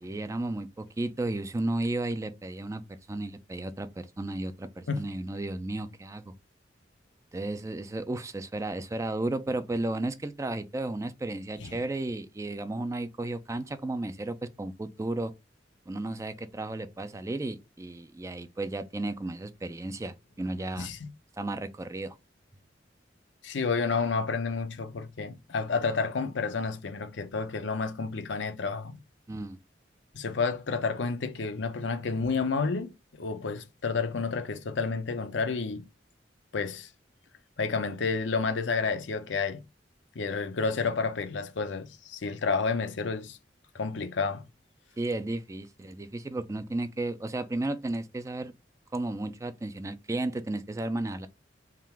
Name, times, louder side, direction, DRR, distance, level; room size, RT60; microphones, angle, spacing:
voice 1, 0.0-2.8 3.1-6.3 7.3-15.3 15.9-20.9 21.4-22.2 29.3-29.6 45.0-48.5 48.9-51.3, right 2 dB, 15° right, 0.3 m, -33 dB
voice 2, 20.8-21.1 23.4-29.0 30.1-35.8 36.5-36.9 37.6-39.6 40.1-43.4 43.7-44.4, left 4 dB, 80° left, 0.6 m, -30 dB
3.7 x 2.4 x 4.3 m
head